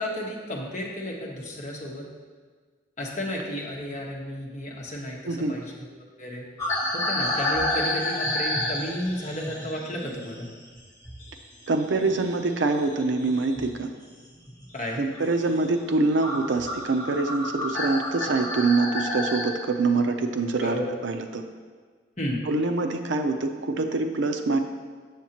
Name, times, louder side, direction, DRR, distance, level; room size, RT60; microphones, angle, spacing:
voice 1, 0.0-2.1 3.0-5.9 6.2-6.4 6.9-10.5 14.7-15.0 20.6-20.8 22.2-22.4, equal, 40° left, -2 dB, 1.1 m, -32 dB
voice 2, 5.3-5.6 11.7-13.9 15.0-20.8 21.0-21.4 22.5-24.6, right 3 dB, 75° right, 6 dB, 0.5 m, -25 dB
sound 1, 6.6-11.4 11.6-13.8 14.3-14.7 15.1-15.3 15.9-16.0 16.2-19.5, left 1 dB, 15° left, 1.6 m, -30 dB
7.5 x 7.1 x 2.9 m, 1.5 s
head